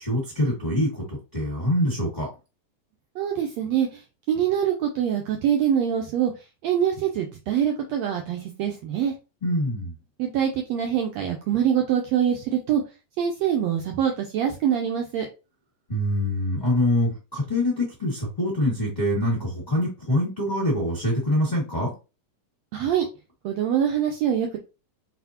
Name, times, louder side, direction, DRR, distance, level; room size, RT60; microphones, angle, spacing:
voice 1, 0.0-2.3 9.4-9.9 15.9-21.9, left 1 dB, 25° left, -5 dB, 1.0 m, -25 dB
voice 2, 3.2-4.0 4.3-6.3 6.6-9.1 10.2-12.8 13.2-15.3 22.7-23.1 23.4-24.6, right 9 dB, 80° right, 2 dB, 1.6 m, -24 dB
4.3 x 4.1 x 2.8 m, 0.30 s
omnidirectional pair, 3.6 m